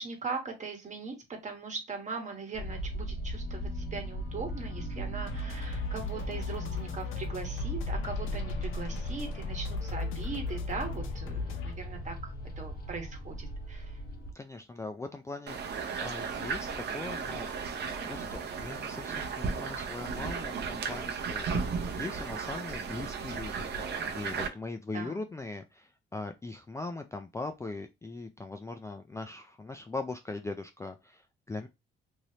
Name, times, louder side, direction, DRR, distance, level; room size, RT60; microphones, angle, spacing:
voice 1, 0.0-14.0 24.9-25.2, right 4 dB, 35° right, 3 dB, 1.2 m, -40 dB
sound 1, 2.5-14.3, equal, 50° left, 1.0 m, -38 dB
sound 2, 5.2-11.7, left 5 dB, 85° left, 0.6 m, -38 dB
voice 2, 14.3-17.7 18.0-31.7, left 3 dB, 15° left, 6 dB, 0.3 m, -40 dB
sound 3, 15.5-24.5, right 5 dB, 55° right, 0.7 m, -35 dB
3.1 x 2.7 x 2.8 m, 0.23 s
cardioid pair, 90°, 20 cm